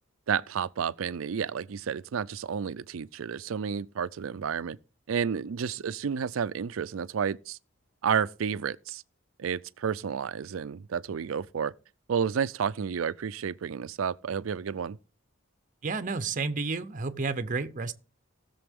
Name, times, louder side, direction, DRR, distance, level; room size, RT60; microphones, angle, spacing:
voice 1, 0.3-4.8 5.1-7.6 8.0-9.0 9.4-11.7 12.1-15.0, right 7 dB, 80° right, 0.4 m, -31 dB
voice 2, 15.8-17.9, right 4 dB, 40° right, 0.7 m, -31 dB
18.5 x 6.9 x 3.6 m
head